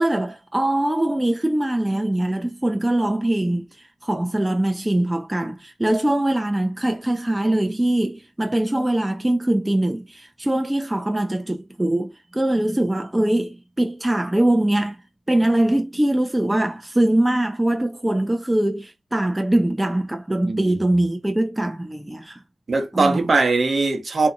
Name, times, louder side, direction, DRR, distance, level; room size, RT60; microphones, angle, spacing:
voice 1, 0.0-15.0 15.3-22.4 22.9-23.2, right 1 dB, 15° right, 0.4 m, -22 dB
voice 2, 20.4-20.8 22.7-24.3, right 3 dB, 50° right, 0.8 m, -20 dB
2.6 x 2.5 x 2.6 m
cardioid pair, 50°, 0 cm